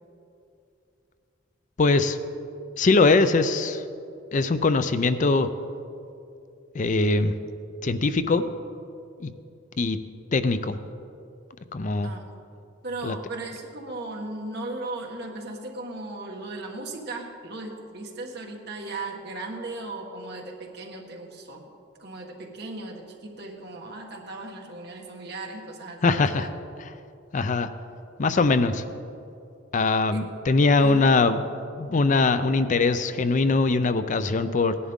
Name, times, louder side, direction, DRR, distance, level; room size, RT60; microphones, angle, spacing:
voice 1, 1.8-2.2 2.8-3.8 4.3-5.5 6.7-7.3 7.8-8.4 9.2-9.3 9.8-10.0 10.3-10.8 11.7-12.1 13.0-13.1 26.0-26.5 27.3-27.7 28.2-28.8 29.7-31.4 31.8-34.8, left 3 dB, 45° left, 11 dB, 0.5 m, -21 dB
voice 2, 12.8-21.7 22.0-26.5 30.1-30.3 30.8-31.1, right 2 dB, 60° right, 0 dB, 1.6 m, -37 dB
17.5 x 11.0 x 3.7 m, 2.7 s
head